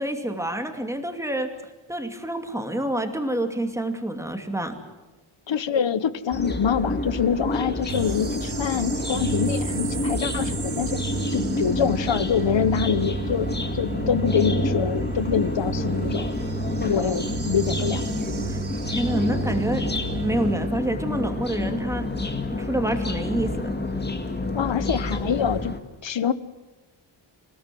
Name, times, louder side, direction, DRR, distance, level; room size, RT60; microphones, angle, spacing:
voice 1, 0.0-1.5 1.9-4.8 18.5-18.6 18.9-19.8 20.1-22.1 22.5-23.7, right 1 dB, 5° right, 6 dB, 2.5 m, -27 dB
voice 2, 5.5-11.0 11.3-13.5 13.7-16.3 16.8-18.0 24.5-25.8 26.0-26.3, left 7 dB, 60° left, 15 dB, 1.2 m, -25 dB
sound 1, 6.3-25.8, left 2 dB, 20° left, 2.2 m, -29 dB
sound 2, 7.9-20.7, right 4 dB, 50° right, 1.6 m, -31 dB
27.5 x 17.5 x 7.8 m, 1.2 s
wide cardioid pair, 150°, 49 cm